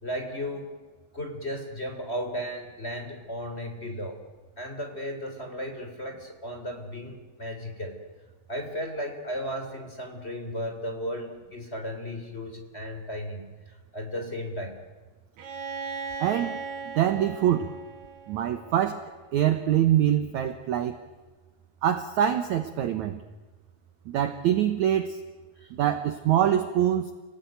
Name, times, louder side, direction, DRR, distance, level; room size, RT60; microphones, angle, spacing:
voice 1, 0.0-0.7 1.1-4.2 4.6-8.0 8.5-14.8 25.6-25.7, equal, 15° left, 4 dB, 3.3 m, -35 dB
Bowed string instrument, 15.4-19.1, right 4 dB, 90° right, 4.9 m, -38 dB
voice 2, 16.2-16.6 17.0-17.7 18.3-19.0 19.3-21.0 21.8-23.2 24.1-25.2 25.8-27.0, right 10 dB, 65° right, 9 dB, 2.0 m, -24 dB
29.5 x 19.0 x 9.3 m, 1.4 s
omnidirectional pair, 4.5 m